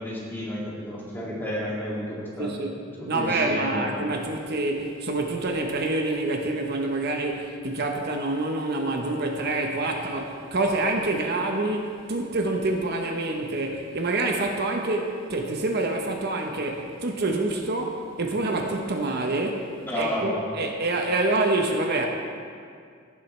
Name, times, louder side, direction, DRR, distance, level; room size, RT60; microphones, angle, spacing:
voice 1, 0.0-2.5 3.0-3.9 19.8-20.4, equal, 10° left, -6 dB, 2.3 m, -31 dB
voice 2, 2.4-2.8 3.1-22.1, right 2 dB, 55° right, 2 dB, 0.9 m, -27 dB
17.0 x 7.4 x 3.2 m, 2.2 s
head